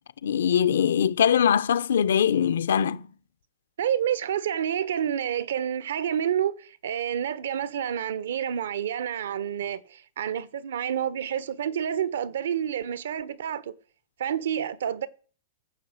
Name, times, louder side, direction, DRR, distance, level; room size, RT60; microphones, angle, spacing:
voice 1, 0.2-3.1, left 8 dB, 90° left, 0.9 m, -22 dB
voice 2, 3.8-13.7 14.2-15.1, right 9 dB, 75° right, 1.2 m, -29 dB
15.5 x 7.4 x 7.9 m
supercardioid pair, 165°, 0 cm